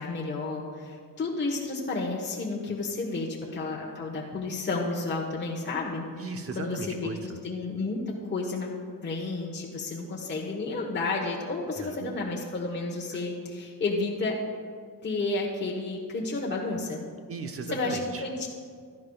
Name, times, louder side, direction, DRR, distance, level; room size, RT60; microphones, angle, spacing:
voice 1, 0.0-6.0 6.5-7.1 7.4-8.7 9.0-14.4 15.0-17.0 17.7-18.5, left 3 dB, 30° left, -2 dB, 1.2 m, -31 dB
voice 2, 6.2-7.4 11.8-12.1 13.1-13.2 17.3-18.2, right 3 dB, 35° right, 6 dB, 0.9 m, -37 dB
16.0 x 11.5 x 2.4 m, 2.1 s
cardioid pair, 135°, 38 cm